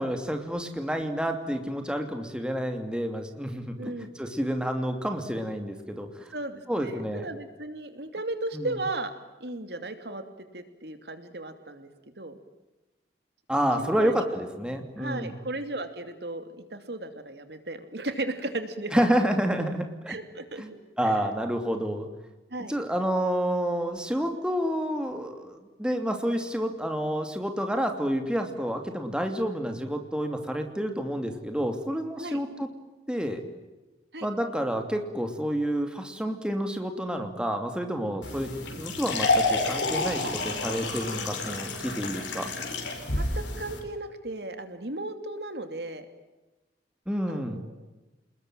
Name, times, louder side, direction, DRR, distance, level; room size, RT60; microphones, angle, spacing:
voice 1, 0.0-6.1 6.7-7.2 8.5-8.7 13.5-15.4 18.9-20.2 20.6-20.7 21.0-22.1 22.7-32.7 33.1-33.4 34.2-42.5 47.1-47.6, equal, 5° right, 5 dB, 2.7 m, -29 dB
voice 2, 6.3-9.1 9.4-10.2 10.5-11.9 12.2-12.3 13.8-14.2 15.0-19.1 20.1-21.2 22.5-22.7 32.2-32.4 34.1-34.3 40.2-40.3 43.2-46.1 47.3-47.7, right 2 dB, 65° right, 8 dB, 2.8 m, -35 dB
sound 1, 38.2-43.8, left 2 dB, 85° left, 6.2 m, -29 dB
29.5 x 21.0 x 9.1 m, 1.1 s
head